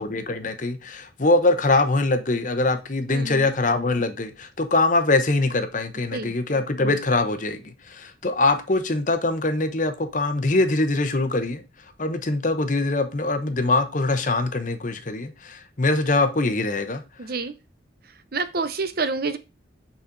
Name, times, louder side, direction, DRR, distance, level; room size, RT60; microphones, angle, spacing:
voice 1, 0.0-11.6 12.0-17.0, left 2 dB, 40° left, 0.9 m, -23 dB
voice 2, 3.1-3.5 6.1-6.3 17.2-17.6 18.0-19.4, right 4 dB, 50° right, 0.7 m, -28 dB
8.3 x 4.2 x 3.9 m
head